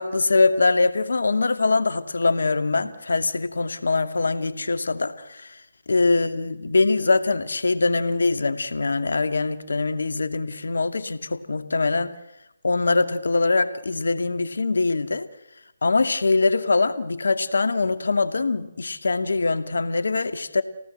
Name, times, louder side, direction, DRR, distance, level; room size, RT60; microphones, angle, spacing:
voice 1, 0.0-5.5 5.9-12.2 12.6-15.3 15.8-20.6, left 3 dB, 70° left, 9 dB, 2.3 m, -23 dB
28.5 x 18.5 x 7.9 m, 0.91 s
figure-of-eight pair, 145°, 0 cm